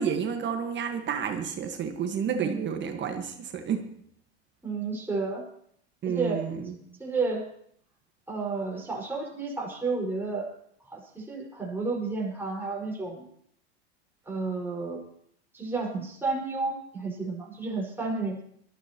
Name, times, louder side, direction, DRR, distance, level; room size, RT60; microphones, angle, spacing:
voice 1, 0.0-3.8 6.0-6.8, right 7 dB, 35° right, 5 dB, 1.6 m, -30 dB
voice 2, 2.2-2.7 4.6-5.4 6.0-6.5 7.0-7.5 8.3-10.5 10.9-13.3 14.3-15.0 15.5-18.4, right 3 dB, 5° right, -3 dB, 5.3 m, -31 dB
21.0 x 13.5 x 3.1 m, 0.66 s
hypercardioid pair, 95°, 32 cm